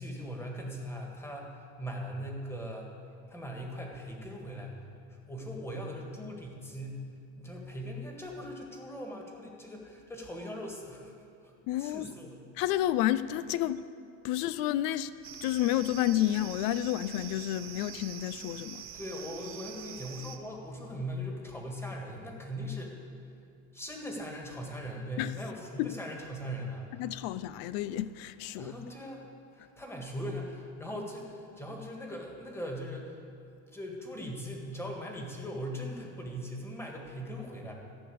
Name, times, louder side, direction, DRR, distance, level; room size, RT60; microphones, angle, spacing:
voice 1, 0.0-2.9 3.3-4.8 5.1-7.0 7.4-11.1 11.4-11.5 11.8-12.5 18.9-22.9 23.7-27.0 28.6-29.2 29.5-33.2 33.4-37.8, equal, 5° left, 1.7 m, -40 dB
voice 2, 11.7-12.1 12.6-13.8 14.2-15.1 15.4-18.9 25.2-25.3 25.8-25.9 27.0-28.7, left 13 dB, 70° left, 0.5 m, -30 dB
sound 1, 15.2-20.4, right 9 dB, 35° right, 0.9 m, -45 dB
14.0 x 6.0 x 8.6 m
cardioid pair, 140°, 37 cm